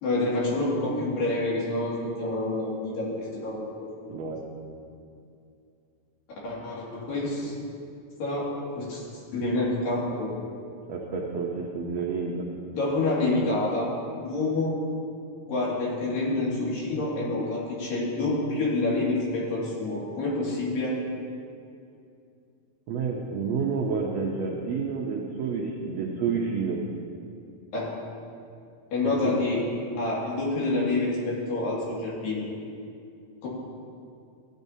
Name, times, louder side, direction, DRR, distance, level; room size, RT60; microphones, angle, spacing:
voice 1, 0.0-3.9 6.4-7.5 8.2-9.0 9.3-10.3 12.7-14.8 15.5-21.0 27.7-27.9 28.9-29.6 30.0-32.4 33.4-33.5, left 2 dB, 80° left, -5 dB, 3.8 m, -27 dB
voice 2, 10.9-12.3 22.9-26.8 29.2-29.4, right 5 dB, 80° right, -2 dB, 1.5 m, -29 dB
16.0 x 9.8 x 2.7 m, 2.5 s
omnidirectional pair, 4.0 m